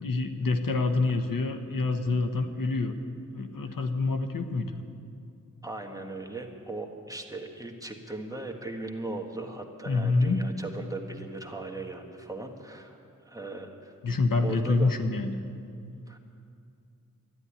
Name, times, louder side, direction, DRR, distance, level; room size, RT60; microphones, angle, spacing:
voice 1, 0.0-2.9 3.3-4.7 9.9-10.5 14.0-15.4, left 3 dB, 90° left, 7 dB, 1.1 m, -27 dB
voice 2, 5.6-13.0 13.2-13.9 14.4-14.9 16.1-16.2, right 2 dB, 10° right, 2 dB, 1.6 m, -38 dB
12.5 x 12.0 x 9.9 m, 2.5 s
wide cardioid pair, 75°, 32 cm